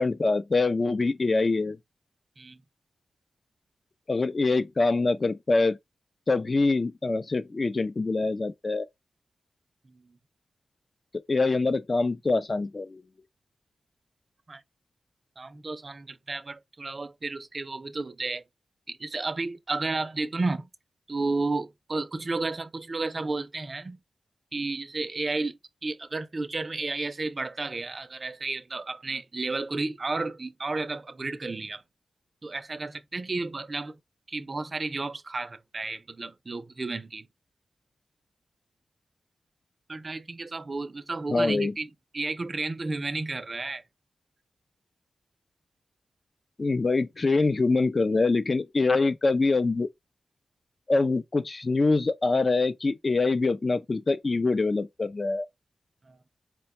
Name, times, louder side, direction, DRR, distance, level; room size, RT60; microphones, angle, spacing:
voice 1, 0.0-1.8 4.1-5.8 6.3-8.9 11.3-13.0 41.3-41.7 46.6-49.9 50.9-55.5, left 3 dB, 45° left, 0.6 m, -24 dB
voice 2, 15.4-18.4 18.9-20.7 21.1-24.0 24.5-31.8 32.4-34.0 34.3-37.3 39.9-43.8 56.0-56.2, right 3 dB, 45° right, 0.5 m, -32 dB
4.3 x 2.3 x 4.1 m
cardioid pair, 70°, 0 cm